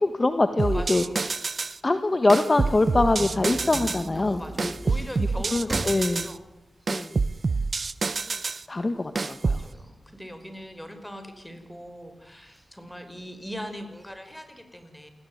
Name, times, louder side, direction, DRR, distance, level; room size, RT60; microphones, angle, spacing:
voice 1, 0.0-1.4 1.8-4.7 5.2-6.3 6.9-7.1 8.7-9.6, left 2 dB, 30° left, 8 dB, 1.6 m, -24 dB
voice 2, 0.6-1.2 4.1-6.4 9.4-15.1, equal, 5° left, 8 dB, 5.0 m, -41 dB
sound 1, 0.6-1.8 2.3-4.1 4.6-6.3 6.9-8.6 9.2-9.7, right 4 dB, 45° right, 1.0 m, -27 dB
sound 2, 2.7-7.9 8.4-8.5 8.8-10.9 11.4-11.9 12.5-12.6 12.9-13.0 13.5-14.1, right 1 dB, 10° right, 3.5 m, -39 dB
29.0 x 20.0 x 9.5 m, 1.0 s
wide cardioid pair, 100°, 0 cm